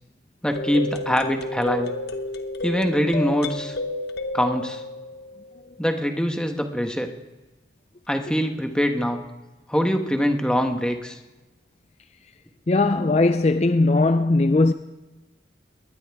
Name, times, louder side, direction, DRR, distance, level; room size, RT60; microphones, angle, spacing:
voice 1, 0.4-1.9 2.6-3.8 4.3-4.8 5.8-7.1 8.1-9.2 9.7-11.2, equal, 5° left, 1.2 m, -23 dB
sound 1, 0.5-5.7, left 2 dB, 65° left, 1.2 m, -31 dB
voice 2, 12.7-14.7, left 2 dB, 35° left, 0.4 m, -19 dB
20.5 x 20.0 x 3.6 m
head